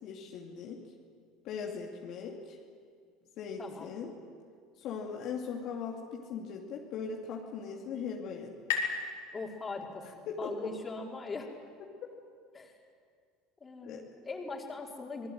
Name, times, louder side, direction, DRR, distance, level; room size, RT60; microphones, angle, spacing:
voice 1, 0.0-0.8 1.4-2.6 3.4-4.1 4.8-8.5 10.3-10.7 13.8-14.0, left 6 dB, 55° left, -1 dB, 2.7 m, -39 dB
sound 1, 7.2-10.6, left 5 dB, 75° left, 4.8 m, -39 dB
voice 2, 9.3-11.5 12.5-12.7 13.6-15.3, left 3 dB, 25° left, 0 dB, 4.8 m, -41 dB
28.0 x 20.0 x 7.9 m, 2.1 s
hypercardioid pair, 75°, 0 cm